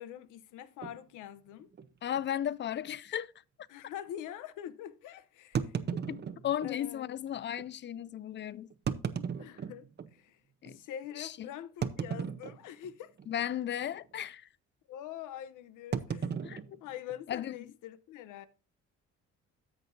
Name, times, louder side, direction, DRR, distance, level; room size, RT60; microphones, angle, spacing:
voice 1, 0.0-1.7 3.7-5.8 6.6-7.1 9.4-10.4 10.7-13.1 14.9-16.3 16.8-18.5, left 10 dB, 90° left, 0.7 m, -44 dB
sound 1, 0.8-1.0 1.7-1.9 2.2-2.3 2.9-3.0 5.5-6.8 7.6-7.7 8.7-10.1 10.7-10.8 11.8-12.9 13.2-13.5 13.8-14.1 15.9-17.5, right 7 dB, 35° right, 0.7 m, -36 dB
voice 2, 2.0-3.3 6.1-8.7 10.6-10.8 11.2-11.5 13.3-14.5 16.4-16.8 17.3-17.7, left 10 dB, 40° left, 0.4 m, -35 dB
13.5 x 6.0 x 2.6 m
cardioid pair, 90°, 30 cm